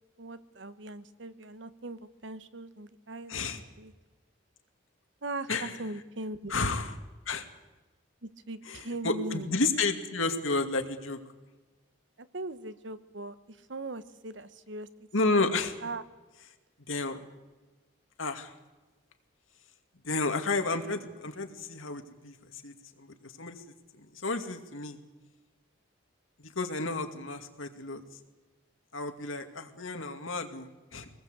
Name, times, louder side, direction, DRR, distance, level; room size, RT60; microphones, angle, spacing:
voice 1, 0.2-3.9 5.2-6.5 8.2-9.5 12.2-14.9 15.2-15.5 15.8-16.0, right 2 dB, 65° right, 12 dB, 1.2 m, -40 dB
voice 2, 3.3-3.6 5.5-5.8 6.5-6.9 7.3-7.5 8.7-11.2 15.1-15.7 16.9-17.3 18.2-18.5 20.0-23.6 24.0-25.0 26.4-28.0 28.9-31.1, left 3 dB, 85° left, 6 dB, 2.4 m, -31 dB
25.0 x 19.5 x 8.2 m, 1.2 s
head